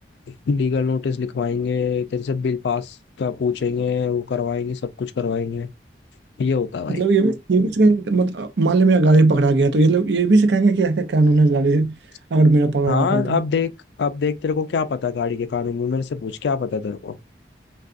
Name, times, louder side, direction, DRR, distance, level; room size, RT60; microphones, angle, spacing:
voice 1, 0.5-5.7 6.4-7.0 12.9-13.7 14.0-17.2, left 5 dB, 80° left, 0.4 m, -24 dB
voice 2, 6.9-11.9 12.3-13.4, right 3 dB, 85° right, 0.5 m, -17 dB
3.6 x 2.3 x 2.4 m
head